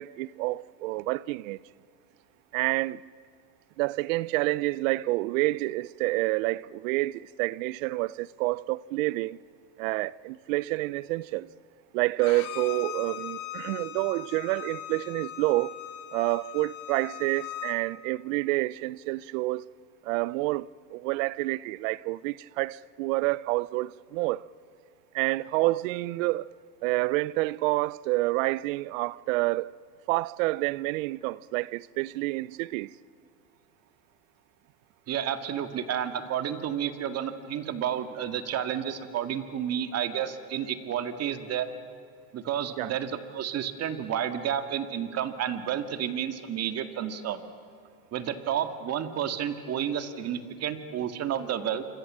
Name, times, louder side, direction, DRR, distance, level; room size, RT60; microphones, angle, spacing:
voice 1, 0.0-1.6 2.5-3.1 3.8-9.4 9.8-11.5 11.9-15.7 16.1-19.7 20.0-24.5 25.1-26.5 26.8-29.7 30.1-32.9 42.8-42.9, right 20 dB, 55° right, 0.6 m, -28 dB
Bowed string instrument, 12.2-17.8, left 13 dB, 65° left, 2.7 m, -39 dB
voice 2, 35.1-41.7 42.3-47.4 48.1-51.8, right 9 dB, 30° right, 2.0 m, -31 dB
27.5 x 26.0 x 7.5 m
supercardioid pair, 130°, 47 cm